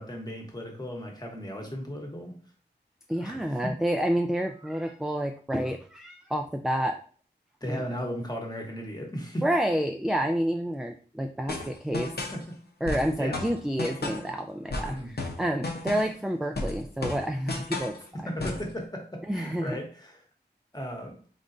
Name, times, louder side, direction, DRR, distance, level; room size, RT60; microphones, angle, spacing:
voice 1, 0.0-2.4 3.2-3.7 7.6-9.4 11.5-11.7 12.3-12.6 13.2-13.4 14.9-15.1 18.1-20.2 20.7-21.2, equal, 20° left, 1 dB, 1.1 m, -36 dB
voice 2, 3.1-7.0 7.7-7.8 9.4-12.1 12.8-18.0 19.3-19.8, equal, 5° right, 4 dB, 0.3 m, -29 dB
sound 1, 11.5-12.4 12.9-14.3 14.7-16.2 16.6-18.0 18.4-18.7, left 2 dB, 65° left, 0.8 m, -33 dB
3.9 x 3.6 x 2.6 m, 0.42 s
wide cardioid pair, 65°, 18 cm